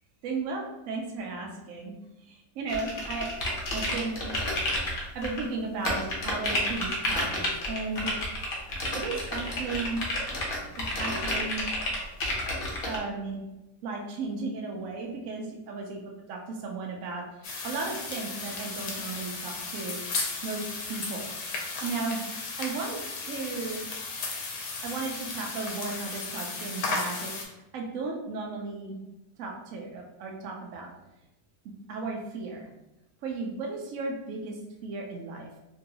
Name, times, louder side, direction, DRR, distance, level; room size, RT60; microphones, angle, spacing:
voice 1, 0.2-1.9 2.2-3.3 3.7-4.2 5.1-8.5 8.9-10.0 11.0-11.6 12.8-13.4 13.8-16.0 16.3-20.0 20.4-21.3 21.8-22.2 22.6-23.8 24.8-27.3 27.7-29.0 29.4-30.9 31.9-32.7 33.2-35.6, right 3 dB, 70° right, -1 dB, 0.8 m, -35 dB
sound 1, 2.7-5.4 5.9-13.0, left 1 dB, 50° left, 0.7 m, -30 dB
sound 2, 17.4-27.4, left 3 dB, 70° left, 1.1 m, -35 dB
3.0 x 2.7 x 2.8 m, 0.95 s
omnidirectional pair, 1.8 m